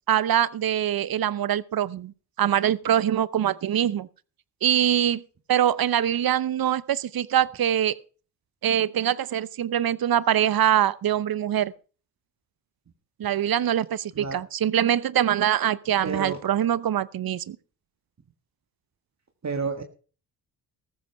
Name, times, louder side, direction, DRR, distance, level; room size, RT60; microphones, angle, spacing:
voice 1, 0.1-2.1 2.4-4.1 4.6-5.2 5.5-8.0 8.6-11.7 13.2-17.6, right 10 dB, 55° right, 0.8 m, -23 dB
voice 2, 16.0-16.4 19.4-19.8, right 4 dB, 40° right, 1.8 m, -29 dB
14.5 x 13.5 x 3.5 m
supercardioid pair, 55°, 42 cm